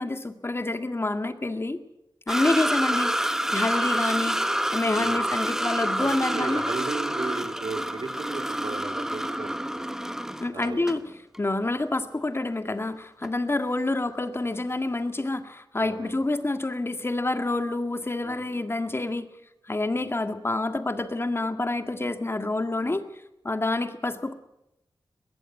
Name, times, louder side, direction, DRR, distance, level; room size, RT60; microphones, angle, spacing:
voice 1, 0.0-1.8 2.3-3.1 3.5-4.4 4.7-6.7 10.4-11.0 11.4-19.3 19.7-23.0 23.4-24.3, left 2 dB, 30° left, 9 dB, 1.8 m, -27 dB
sound 1, 2.3-11.0 11.3-11.4 13.2-13.3, equal, 5° right, 1.2 m, -28 dB
voice 2, 6.0-10.0 10.5-11.1 14.4-14.5 15.8-16.1 18.2-18.6 19.9-20.1, right 4 dB, 80° right, 6 dB, 2.8 m, -36 dB
21.5 x 16.0 x 7.8 m, 0.88 s
wide cardioid pair, 80°, 8 cm